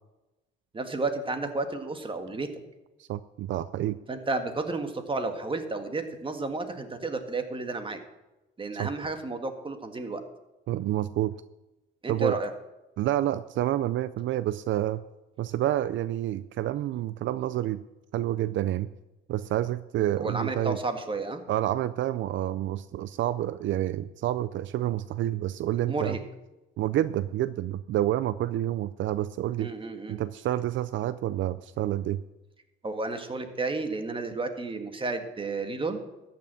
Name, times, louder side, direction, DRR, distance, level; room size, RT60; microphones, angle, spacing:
voice 1, 0.7-2.5 4.1-8.0 8.6-10.2 12.0-12.5 20.2-21.4 25.9-26.2 29.6-30.2 32.8-36.0, right 3 dB, 25° right, 7 dB, 1.7 m, -32 dB
voice 2, 3.0-4.0 8.8-8.9 10.7-11.3 12.1-12.4 13.0-15.0 15.4-17.8 18.1-18.9 19.3-20.8 21.5-26.2 26.8-29.7 30.1-32.2, right 13 dB, 70° right, 15 dB, 0.4 m, -28 dB
14.0 x 6.1 x 8.7 m, 1.0 s
cardioid pair, 90°, 20 cm